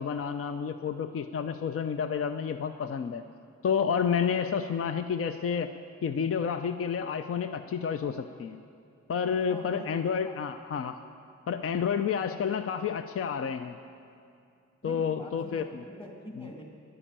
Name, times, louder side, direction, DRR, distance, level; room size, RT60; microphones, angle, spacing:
voice 1, 0.0-3.2 3.6-5.7 6.0-8.6 9.1-11.0 11.5-13.8 14.8-15.8 16.4-16.5, left 7 dB, 50° left, 9 dB, 0.5 m, -30 dB
voice 2, 9.5-9.9 10.2-10.4 14.8-16.7, equal, 20° left, 0 dB, 2.4 m, -45 dB
11.0 x 9.9 x 8.8 m, 2.4 s
cardioid pair, 85°, 30 cm